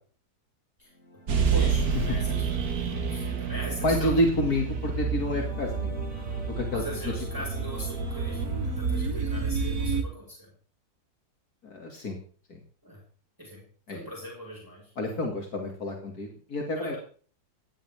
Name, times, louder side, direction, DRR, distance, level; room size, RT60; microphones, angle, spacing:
sound 1, 0.9-8.8, left 1 dB, 45° left, 3.0 m, -46 dB
sound 2, 1.3-10.0, right 5 dB, 70° right, 2.0 m, -29 dB
voice 1, 1.5-4.1 6.1-10.5 12.8-13.0 13.4-14.9 16.7-17.0, equal, 10° right, -2 dB, 5.6 m, -40 dB
voice 2, 3.8-5.9 6.6-7.1 11.6-12.2 12.5-12.6 13.9-14.0 15.0-16.9, left 1 dB, 75° left, 1 dB, 3.2 m, -29 dB
18.0 x 17.5 x 3.7 m, 0.43 s
omnidirectional pair, 1.6 m